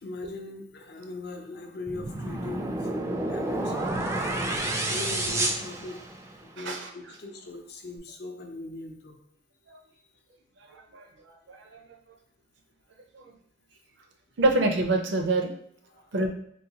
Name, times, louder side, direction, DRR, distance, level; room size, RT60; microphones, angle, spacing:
voice 1, 0.0-2.9 3.3-3.8 4.1-6.1 6.4-9.2 15.9-16.1, left 3 dB, 55° left, 3 dB, 0.5 m, -40 dB
sound 1, 1.9-6.5, right 1 dB, 15° right, 0.3 m, -30 dB
voice 2, 6.6-6.9 9.7-9.8 10.7-11.8 13.1-13.2 14.4-15.5 16.1-16.3, right 2 dB, 65° right, 4 dB, 0.5 m, -27 dB
3.8 x 2.2 x 2.8 m, 0.67 s
head